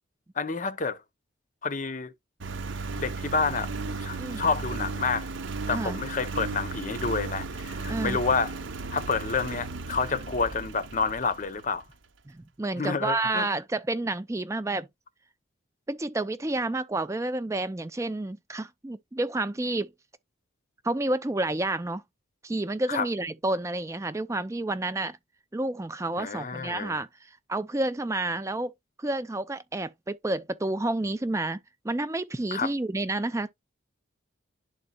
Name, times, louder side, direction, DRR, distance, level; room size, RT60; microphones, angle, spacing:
voice 1, 0.4-1.0 1.6-2.1 3.0-5.3 5.7-8.5 8.9-11.8 12.8-13.5 22.9-23.1 26.2-27.0 32.5-32.7, left 4 dB, 40° left, 0.6 m, -29 dB
Engine, 2.4-11.8, right 3 dB, 70° right, 0.9 m, -35 dB
voice 2, 7.9-8.2 12.6-14.9 15.9-19.9 20.8-22.0 22.4-25.2 25.5-28.7 29.0-31.6 31.8-33.5, right 2 dB, 15° right, 0.4 m, -30 dB
11.5 x 4.0 x 2.3 m
head